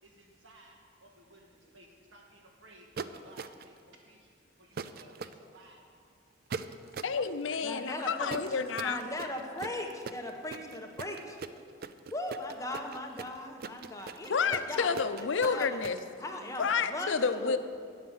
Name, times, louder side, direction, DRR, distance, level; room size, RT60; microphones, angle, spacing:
voice 1, 0.0-6.1, right 1 dB, 80° right, 1 dB, 1.9 m, -58 dB
sound 1, 3.0-3.8 4.8-5.3 6.5-7.2 8.3-16.0, right 5 dB, 55° right, 0.4 m, -40 dB
voice 2, 7.0-9.0 14.3-16.0 16.6-17.6, left 5 dB, 85° left, 11 dB, 0.6 m, -29 dB
voice 3, 7.6-11.4 12.1-15.8 16.2-17.6, left 1 dB, 15° left, 2 dB, 1.1 m, -39 dB
9.5 x 8.6 x 7.3 m, 2.2 s
head